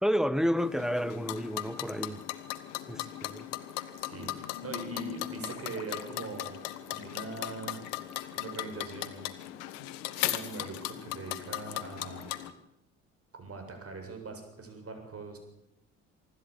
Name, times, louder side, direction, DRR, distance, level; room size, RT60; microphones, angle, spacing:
voice 1, 0.0-2.2 2.9-3.4, equal, ahead, 1.2 m, -30 dB
sound 1, 0.6-12.5, left 14 dB, 80° left, 1.4 m, -38 dB
voice 2, 4.0-7.8 8.3-9.3 10.2-12.3 13.3-15.4, right 4 dB, 40° right, 7.5 m, -42 dB
24.5 x 13.0 x 8.7 m
hypercardioid pair, 60°, 37 cm